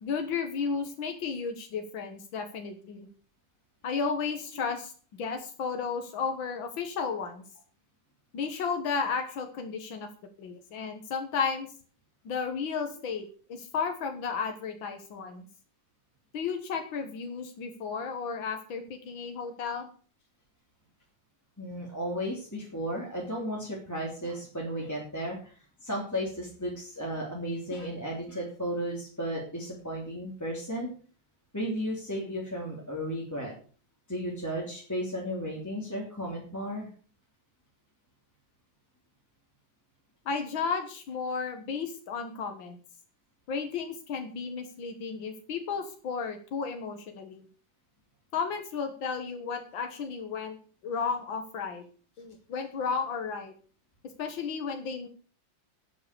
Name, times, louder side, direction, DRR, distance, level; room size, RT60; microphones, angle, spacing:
voice 1, 0.0-3.1 3.8-4.9 5.2-7.4 8.3-10.1 10.4-11.7 12.3-15.5 16.3-19.9 40.3-42.8 43.5-47.5 48.3-50.6 50.8-51.8 52.2-53.5 54.2-55.1, left 5 dB, 90° left, 6 dB, 2.2 m, -33 dB
voice 2, 21.6-25.5 25.8-30.9 31.5-33.5 34.1-36.9, equal, 10° left, -3 dB, 3.2 m, -34 dB
11.5 x 8.7 x 6.8 m, 0.41 s
omnidirectional pair, 2.1 m